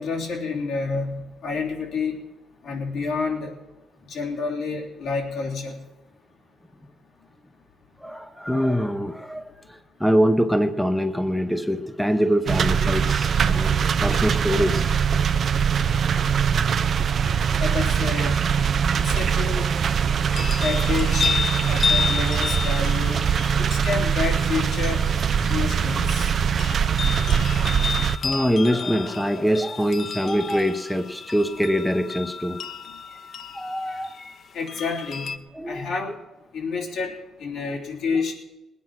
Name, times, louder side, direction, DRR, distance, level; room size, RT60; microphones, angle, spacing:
voice 1, 0.0-2.2 2.6-3.5 4.1-5.8 17.6-18.4 19.0-19.6 20.6-21.3 21.7-23.2 23.6-25.0 25.5-26.3 34.5-35.3 35.7-36.1 36.5-38.3, left 4 dB, 75° left, -2 dB, 3.3 m, -29 dB
voice 2, 8.0-14.9 28.2-32.6 33.5-34.2 35.5-36.0, equal, ahead, 7 dB, 0.9 m, -24 dB
sound 1, 12.5-28.2, right 7 dB, 55° right, 0.6 m, -22 dB
sound 2, 20.3-35.4, left 6 dB, 55° left, 0.8 m, -32 dB
19.5 x 9.6 x 6.0 m, 1.0 s
cardioid pair, 90°, 0 cm